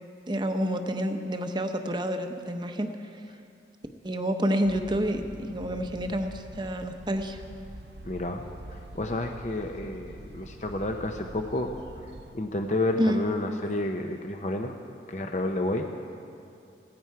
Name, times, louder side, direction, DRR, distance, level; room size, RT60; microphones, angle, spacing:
voice 1, 0.3-2.9 4.0-7.4 13.0-13.2, equal, 25° right, 6 dB, 0.8 m, -28 dB
sound 1, 4.6-12.3, right 1 dB, 75° right, 0.8 m, -45 dB
voice 2, 8.0-11.7 12.3-14.7 15.1-15.9, left 2 dB, 40° left, 4 dB, 0.7 m, -30 dB
17.0 x 15.0 x 4.7 m, 2.7 s
head